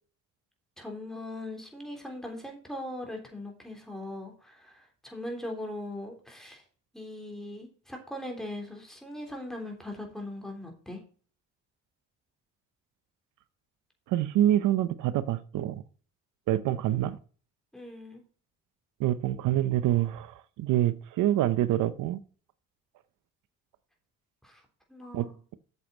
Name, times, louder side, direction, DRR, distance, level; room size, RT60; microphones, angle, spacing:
voice 1, 0.8-6.6 6.9-11.0 17.7-18.2 24.4-24.6 24.9-25.3, left 1 dB, ahead, 1 dB, 3.4 m, -40 dB
voice 2, 14.1-15.8 16.5-17.2 19.0-22.2 25.1-25.6, right 13 dB, 85° right, 15 dB, 0.7 m, -26 dB
8.2 x 7.1 x 4.4 m, 0.41 s
cardioid pair, 90°, 30 cm